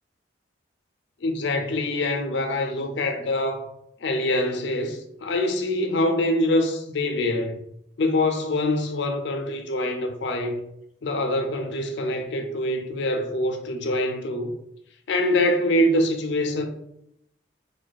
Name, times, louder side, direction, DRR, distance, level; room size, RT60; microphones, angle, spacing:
voice 1, 1.2-3.7 4.0-7.6 8.0-10.6 11.0-14.5 15.1-16.7, left 1 dB, 75° left, 0.5 m, -24 dB
2.6 x 2.3 x 4.1 m
head